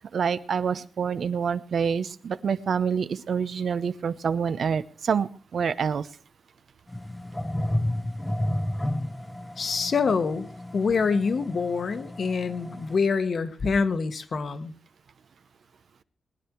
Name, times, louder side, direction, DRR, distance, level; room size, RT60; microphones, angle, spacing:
voice 1, 0.1-6.1, right 6 dB, 55° right, 14 dB, 0.7 m, -27 dB
sound 1, 6.9-13.0, left 1 dB, 5° left, 0.7 m, -32 dB
voice 2, 9.6-14.7, left 5 dB, 45° left, 10 dB, 1.2 m, -26 dB
20.0 x 10.5 x 4.6 m, 0.38 s
wide cardioid pair, 180°, 0 cm